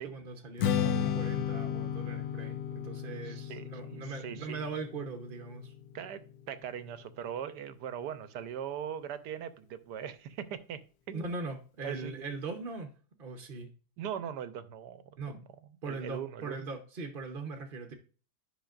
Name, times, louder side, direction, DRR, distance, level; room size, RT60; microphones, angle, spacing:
voice 1, 0.0-5.7 11.1-12.9 13.2-13.7 15.2-15.4 15.8-17.9, right 4 dB, 40° right, 0.8 m, -40 dB
Strum, 0.6-6.9, left 9 dB, 70° left, 1.0 m, -34 dB
voice 2, 3.2-4.6 5.9-6.2 6.5-10.8 11.1-11.4 11.8-12.1 14.0-15.2 15.8-16.6, right 9 dB, 80° right, 1.3 m, -40 dB
10.0 x 5.8 x 2.4 m
omnidirectional pair, 1.8 m